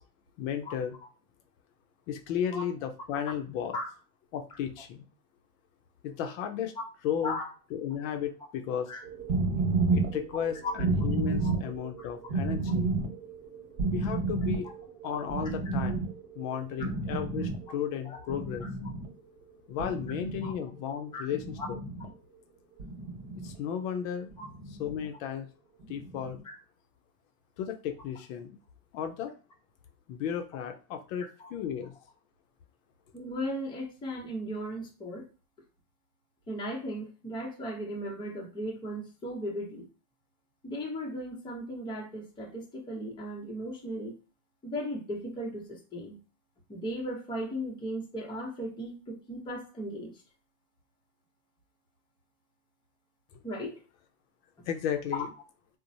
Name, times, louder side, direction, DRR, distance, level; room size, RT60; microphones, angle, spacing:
voice 1, 0.4-0.9 2.1-3.8 4.3-5.0 6.0-6.7 7.0-7.4 7.7-8.9 9.9-12.9 13.9-14.7 15.0-16.1 16.3-18.6 19.7-21.8 23.3-24.3 24.8-25.5 25.9-26.4 27.6-28.6 28.9-29.3 30.1-31.9 53.3-53.4 54.7-55.3, left 8 dB, 60° left, 6 dB, 0.5 m, -34 dB
sound 1, 9.0-17.8 18.1-19.2 19.8-20.5 21.3-22.1 22.8-23.5 24.3-25.0 25.8-26.4, right 3 dB, 55° right, 1.1 m, -31 dB
voice 2, 33.1-35.3 36.5-39.9 40.6-44.1 44.6-46.2 46.7-50.2 53.4-53.8 55.1-55.2, equal, 10° left, -2 dB, 0.6 m, -36 dB
2.9 x 2.0 x 2.6 m, 0.34 s
supercardioid pair, 130°, 46 cm